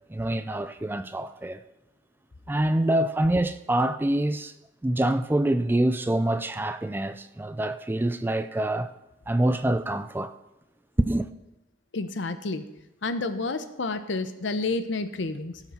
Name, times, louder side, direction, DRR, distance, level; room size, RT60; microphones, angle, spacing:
voice 1, 0.1-1.6 2.5-4.5 4.8-8.9 9.3-10.3 11.0-11.3, right 1 dB, 10° right, 0.3 m, -25 dB
voice 2, 11.9-12.6 13.0-15.6, left 3 dB, 80° left, 0.8 m, -30 dB
17.0 x 6.0 x 4.4 m
head